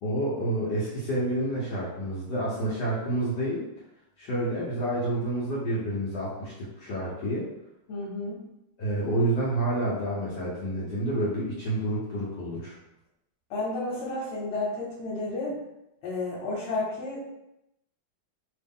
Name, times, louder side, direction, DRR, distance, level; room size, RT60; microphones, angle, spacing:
voice 1, 0.0-3.7 4.2-7.5 8.8-12.7, right 1 dB, 65° left, -7 dB, 1.3 m, -29 dB
voice 2, 7.9-8.4 13.5-15.6 16.0-17.2, left 2 dB, 80° left, -5 dB, 1.7 m, -31 dB
3.1 x 3.0 x 3.5 m, 0.86 s
omnidirectional pair, 2.3 m